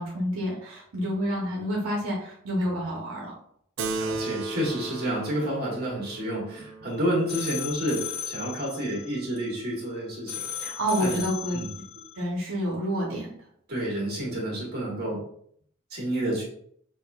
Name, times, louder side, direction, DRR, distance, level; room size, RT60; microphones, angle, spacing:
voice 1, 0.0-3.3 10.6-11.7 12.2-13.3, equal, 80° right, -3 dB, 0.8 m, -29 dB
Keyboard (musical), 3.8-8.7, right 3 dB, 65° right, 0.4 m, -36 dB
voice 2, 3.9-10.4 11.0-11.2 11.5-11.7 13.7-15.2 15.9-16.4, right 1 dB, 45° right, -4 dB, 1.5 m, -29 dB
sound 1, 6.9-9.9 10.3-12.2, left 9 dB, 80° left, 0.5 m, -37 dB
5.6 x 2.6 x 2.3 m, 0.65 s
head